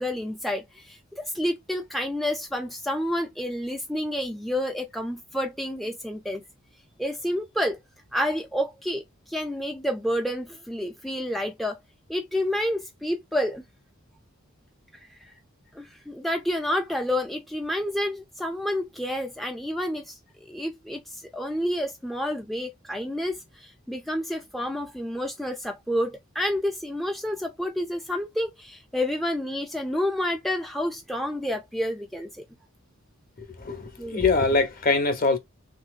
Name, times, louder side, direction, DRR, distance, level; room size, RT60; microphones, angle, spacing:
voice 1, 0.0-6.4 7.0-7.8 8.1-11.8 12.1-13.6 15.7-32.4 34.0-34.2, left 1 dB, ahead, 0.3 m, -29 dB
voice 2, 33.4-35.4, left 3 dB, 45° left, 0.8 m, -23 dB
3.3 x 2.8 x 2.4 m
head